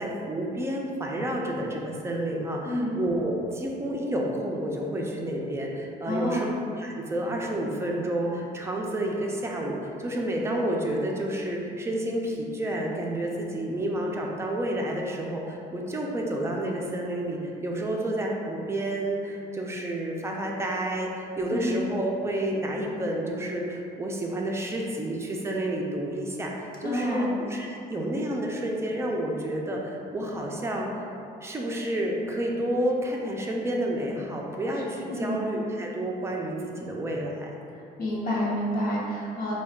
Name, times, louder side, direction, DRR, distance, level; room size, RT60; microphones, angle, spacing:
voice 1, 0.0-31.0 31.4-37.5, right 1 dB, 15° right, -1 dB, 0.5 m, -30 dB
voice 2, 6.1-6.4 21.5-21.8 26.8-27.3 35.1-35.4 38.0-39.5, equal, 55° left, -6 dB, 1.0 m, -28 dB
4.1 x 2.3 x 3.6 m, 2.6 s
cardioid pair, 110°, 17 cm